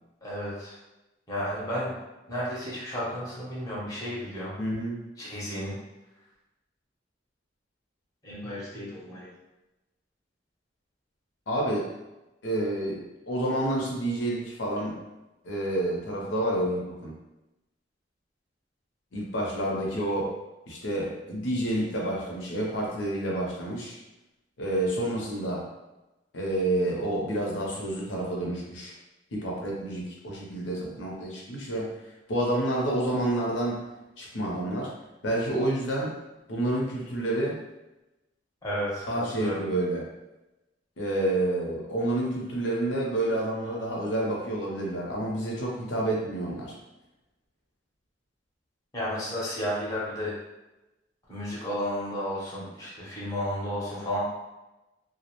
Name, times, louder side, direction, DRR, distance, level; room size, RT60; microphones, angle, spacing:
voice 1, 0.2-0.8 1.3-1.9 2.3-4.5 5.2-5.8 8.2-9.3 38.6-39.6 48.9-50.3 51.3-54.3, equal, 20° left, -7 dB, 0.7 m, -32 dB
voice 2, 4.6-5.0 11.5-11.9 12.4-15.0 15.4-17.1 19.1-20.3 20.7-24.0 24.6-25.7 26.3-28.9 29.3-31.9 32.3-33.8 34.2-34.9 35.2-36.1 36.5-37.6 39.1-40.1 41.0-46.7, right 1 dB, 80° left, -2 dB, 0.7 m, -29 dB
2.3 x 2.0 x 2.8 m, 1.0 s
head